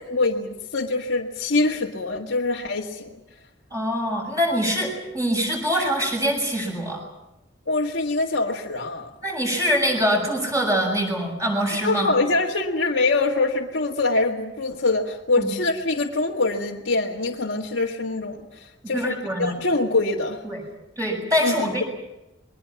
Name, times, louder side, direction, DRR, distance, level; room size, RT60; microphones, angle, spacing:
voice 1, 0.1-3.2 7.7-9.1 11.8-20.4 21.4-21.8, left 3 dB, 85° left, -3 dB, 1.8 m, -24 dB
voice 2, 3.7-7.0 9.2-12.1 15.4-15.5 18.9-19.6 20.4-20.6 21.0-21.9, equal, 15° right, 0 dB, 7.1 m, -24 dB
30.0 x 22.5 x 6.0 m, 0.95 s
head